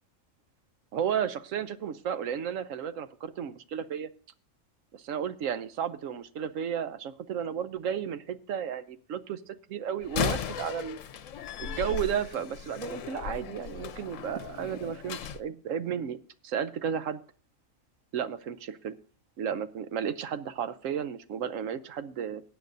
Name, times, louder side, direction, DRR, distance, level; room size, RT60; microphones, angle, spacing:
voice 1, 0.9-4.1 4.9-11.0 11.6-17.2 18.1-19.0 19.4-22.4, right 8 dB, 75° right, 13 dB, 1.1 m, -33 dB
Slam, 10.0-15.4, left 8 dB, 75° left, 1.0 m, -36 dB
19.5 x 8.3 x 2.6 m, 0.43 s
omnidirectional pair, 1.4 m